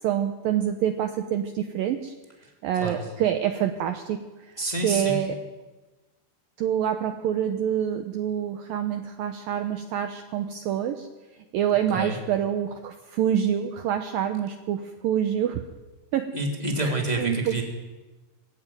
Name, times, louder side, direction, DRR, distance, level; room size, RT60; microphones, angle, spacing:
voice 1, 0.0-2.1 2.6-5.4 6.6-11.1 11.3-15.6 16.1-16.3 16.8-17.6, right 9 dB, 75° right, 7 dB, 2.2 m, -27 dB
voice 2, 4.6-5.2 11.9-12.2 16.3-17.6, right 2 dB, 10° left, 1 dB, 2.3 m, -28 dB
21.5 x 15.5 x 9.2 m, 1.2 s
omnidirectional pair, 5.0 m